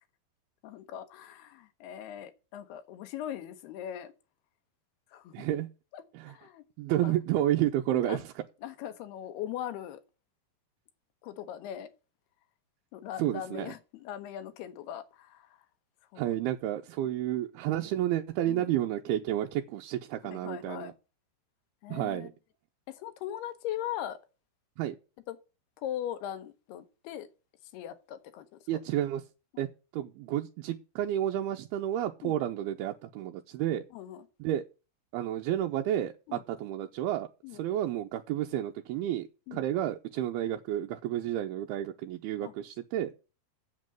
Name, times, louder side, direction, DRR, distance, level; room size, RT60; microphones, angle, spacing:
voice 1, 0.6-4.1 5.1-5.5 5.9-6.6 7.0-7.1 7.9-8.2 8.6-10.0 11.2-11.9 12.9-15.6 16.1-16.4 18.5-18.7 20.2-20.9 21.8-22.3 22.9-24.2 25.3-25.4 25.8-27.3 27.7-28.6 29.5-29.6 32.2-32.4 33.9-34.3 36.3-36.4 37.4-37.6 39.5-39.7 42.4-42.5, left 11 dB, 90° left, 3.1 m, -40 dB
voice 2, 5.3-5.7 6.1-6.3 6.8-8.2 13.2-13.7 16.2-20.9 21.9-22.3 24.8-25.0 28.7-29.2 29.6-29.7 29.9-33.8 34.4-34.6 35.1-43.2, right 12 dB, 85° right, 2.6 m, -31 dB
8.1 x 7.6 x 7.6 m
omnidirectional pair, 4.5 m